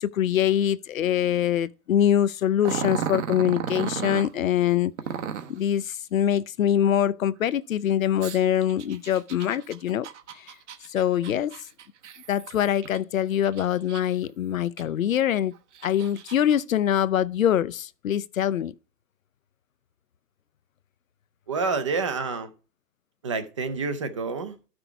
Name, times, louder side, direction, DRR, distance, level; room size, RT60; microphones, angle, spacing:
voice 1, 0.0-4.9 5.5-10.5 10.9-11.5 12.3-15.5 15.8-18.7, left 10 dB, 55° left, 0.6 m, -24 dB
Growling, 2.6-4.3 5.0-5.6 8.2-13.0 13.4-14.3 14.8-14.9 15.5-16.6, right 8 dB, 45° right, 1.2 m, -34 dB
voice 2, 21.5-22.5 23.2-24.6, right 4 dB, 20° right, 0.6 m, -28 dB
13.0 x 6.1 x 4.5 m
hypercardioid pair, 155°, 50 cm